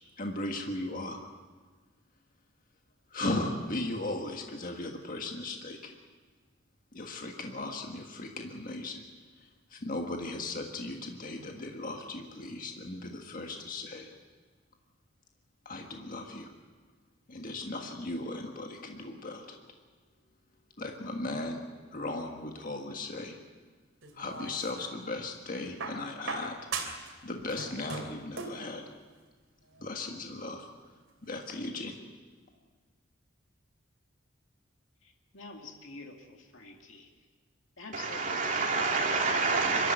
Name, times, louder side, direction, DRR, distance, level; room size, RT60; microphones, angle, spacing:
voice 1, 0.2-1.2 3.1-6.0 6.9-9.0 9.4-14.1 15.7-16.5 17.3-19.6 20.8-23.3 24.1-26.6 27.2-28.8 29.8-30.7 31.3-32.0, left 2 dB, 45° left, 2 dB, 1.6 m, -37 dB
sound 1, 24.0-25.0 25.8-27.1 27.4-28.7 29.8-29.9, right 4 dB, 75° right, 3.1 m, -38 dB
voice 2, 35.3-37.1 37.8-38.6 39.8-39.9, left 3 dB, 75° left, 2 dB, 2.3 m, -46 dB
voice 3, 37.9-39.9, right 4 dB, 40° right, 0 dB, 3.0 m, -28 dB
24.5 x 13.5 x 9.3 m, 1.4 s
head